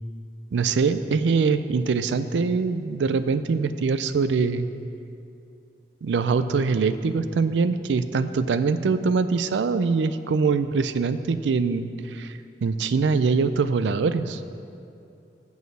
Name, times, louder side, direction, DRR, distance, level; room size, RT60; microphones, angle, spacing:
voice 1, 0.5-4.7 6.0-14.4, right 4 dB, 85° right, 12 dB, 0.4 m, -23 dB
7.2 x 6.2 x 6.7 m, 2.6 s
head